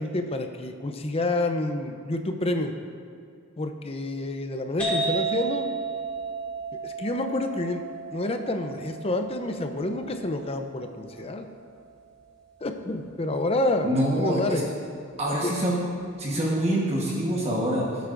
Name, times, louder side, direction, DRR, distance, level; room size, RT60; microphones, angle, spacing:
voice 1, 0.0-2.7 3.6-5.7 6.8-7.8 8.1-11.5 12.6-14.6 15.4-15.5, left 2 dB, 30° left, 6 dB, 0.6 m, -28 dB
sound 1, 4.8-12.2, right 4 dB, 5° left, 2.4 m, -33 dB
voice 2, 13.8-14.6 15.2-15.8 16.2-17.9, right 1 dB, 30° right, -4 dB, 1.3 m, -25 dB
18.0 x 8.2 x 2.6 m, 2.3 s
head